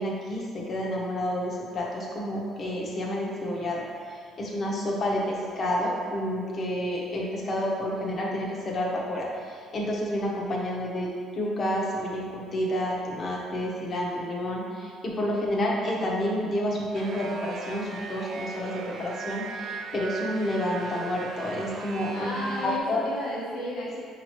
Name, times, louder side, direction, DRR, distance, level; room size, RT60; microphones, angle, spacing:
voice 1, 0.0-11.1 11.3-22.3 22.6-23.0, left 1 dB, 40° left, -3 dB, 0.9 m, -29 dB
sound 1, 16.9-22.8, right 4 dB, 55° right, 0.3 m, -38 dB
voice 2, 22.1-24.0, left 1 dB, 70° left, -6 dB, 1.2 m, -33 dB
5.3 x 3.0 x 3.0 m, 2.1 s
cardioid pair, 95°, 0 cm